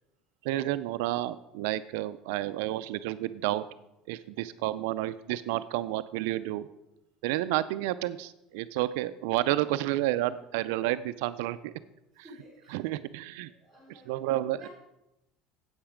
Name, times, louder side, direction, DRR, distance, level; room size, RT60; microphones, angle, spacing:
voice 1, 0.4-3.6 4.1-6.7 7.2-11.7 12.2-12.3 12.7-13.5 14.1-14.7, right 15 dB, 80° right, 13 dB, 0.3 m, -30 dB
voice 2, 12.2-12.8 13.2-14.2 14.6-14.7, right 1 dB, 5° left, -6 dB, 4.0 m, -53 dB
8.9 x 8.0 x 5.0 m, 0.90 s
cardioid pair, 165°, 0 cm